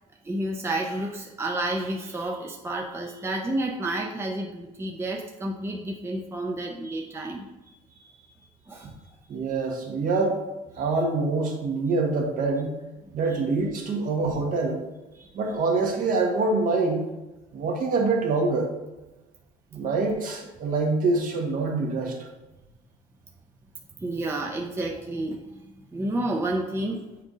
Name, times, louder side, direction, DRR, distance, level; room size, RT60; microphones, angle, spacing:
voice 1, 0.2-8.3 8.6-9.0 13.3-13.4 15.1-15.3 24.0-27.0, right 1 dB, 15° right, 0 dB, 0.6 m, -31 dB
voice 2, 9.3-10.4 10.8-12.7 13.1-14.8 15.3-17.0 17.5-18.7 19.7-22.1, right 3 dB, 55° right, 0 dB, 1.5 m, -25 dB
7.5 x 2.7 x 4.9 m, 1.1 s
cardioid pair, 110°, 17 cm